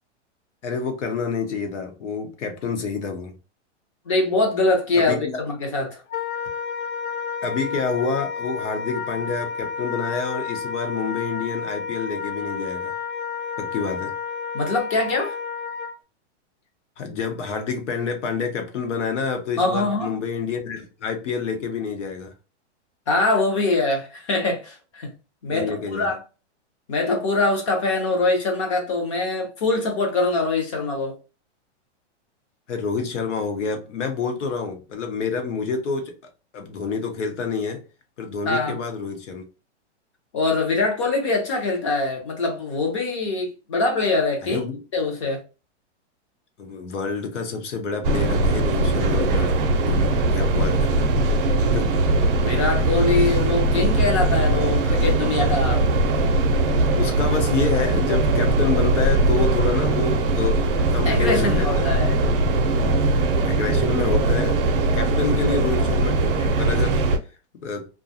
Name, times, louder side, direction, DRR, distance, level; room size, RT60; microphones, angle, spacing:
voice 1, 0.6-3.3 4.9-5.4 7.4-12.9 13.6-14.1 17.0-22.3 25.5-26.1 32.7-36.1 36.5-37.8 38.2-39.4 44.4-44.8 46.6-49.6 49.9-51.1 51.6-51.9 57.0-61.9 62.5-63.1 63.4-64.6 64.9-67.0 67.6-67.9, left 5 dB, 90° left, 1.0 m, -28 dB
voice 2, 4.1-6.0 14.5-15.4 19.6-20.1 23.1-25.1 25.4-26.2 26.9-31.2 38.5-38.7 40.3-44.7 44.9-45.4 52.4-55.9 61.1-62.2, left 3 dB, 30° left, 0.5 m, -23 dB
Wind instrument woodwind instrument, 6.1-16.0, left 5 dB, 65° left, 0.7 m, -31 dB
sound 1, 48.0-67.2, right 2 dB, 50° right, 0.5 m, -20 dB
2.6 x 2.3 x 2.7 m
supercardioid pair, 170°, 35 cm